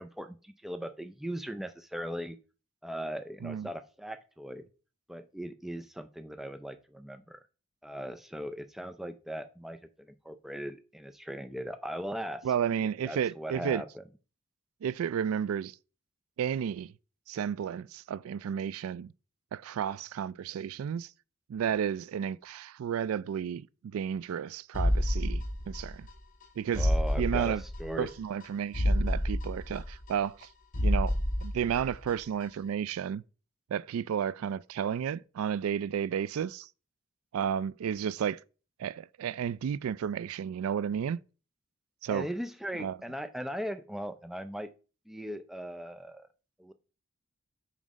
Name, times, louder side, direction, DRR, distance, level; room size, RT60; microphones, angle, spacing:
voice 1, 0.0-2.4 2.8-4.7 5.1-7.4 7.8-12.5 13.0-14.0 26.8-28.1 42.1-44.7 45.1-46.3 46.6-46.7, equal, ahead, 0.4 m, -39 dB
voice 2, 12.4-13.8 14.8-15.8 16.4-16.9 17.3-19.1 19.5-21.1 21.5-26.1 26.6-26.9 27.2-27.6 28.0-30.5 30.8-33.2 33.7-36.7 37.3-38.4 38.8-41.2 42.0-42.3 42.8-43.0, right 8 dB, 80° right, 0.3 m, -32 dB
sound 1, 24.7-26.1 26.4-26.5 26.7-28.1 28.4-28.5 28.7-30.5 30.7-32.1 32.4-32.5, equal, 40° left, 1.1 m, -29 dB
7.2 x 3.2 x 5.1 m
head